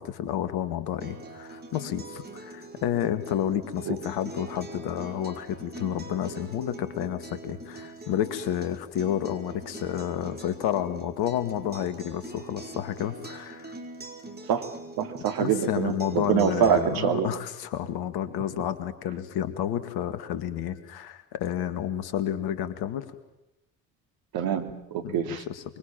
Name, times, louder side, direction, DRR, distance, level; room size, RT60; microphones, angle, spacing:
voice 1, 0.0-13.7 15.4-23.0 25.0-25.6, left 10 dB, 65° left, 12 dB, 2.2 m, -30 dB
Acoustic guitar, 1.0-17.0, right 2 dB, 25° right, 5.1 m, -43 dB
voice 2, 15.0-17.3 24.3-25.4, right 8 dB, 60° right, 6 dB, 2.7 m, -25 dB
25.5 x 23.0 x 7.5 m, 0.92 s
figure-of-eight pair, 50°, 41 cm